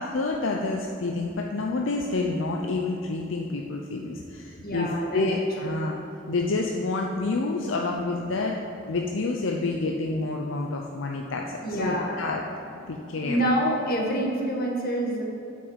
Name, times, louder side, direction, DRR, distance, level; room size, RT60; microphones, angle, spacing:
voice 1, 0.0-6.0 6.3-8.6 8.9-12.4 12.9-13.5, left 3 dB, 75° left, 0 dB, 0.7 m, -28 dB
voice 2, 4.6-5.2 5.6-5.7 11.6-12.3 13.2-15.2, equal, 50° left, -1 dB, 1.8 m, -27 dB
9.6 x 6.3 x 7.3 m, 2.7 s
head